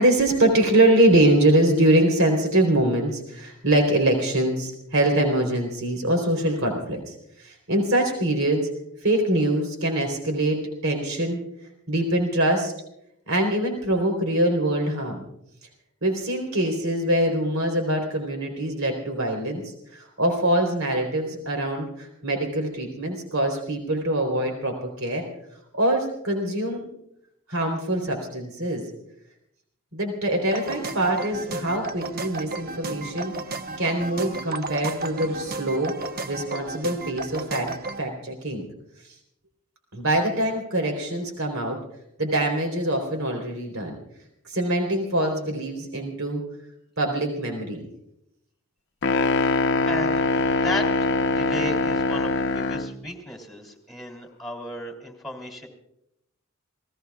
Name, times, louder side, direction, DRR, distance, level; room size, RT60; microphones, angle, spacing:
voice 1, 0.0-8.7 9.0-11.4 11.9-12.7 13.3-15.2 16.0-19.6 19.9-25.2 25.7-26.9 27.5-28.8 29.9-33.3 33.8-35.9 36.3-37.7 38.0-38.6 39.9-41.8 42.2-44.0 44.5-46.4 47.0-47.8, right 1 dB, 70° right, 3 dB, 3.8 m, -23 dB
sound 1, 30.4-38.0, right 3 dB, 45° right, 1.0 m, -33 dB
sound 2, 49.0-53.0, left 3 dB, 60° left, 0.9 m, -23 dB
voice 2, 49.8-50.3 50.6-50.9 51.2-55.7, left 1 dB, ahead, 0 dB, 3.1 m, -34 dB
28.5 x 18.0 x 2.4 m, 0.79 s
head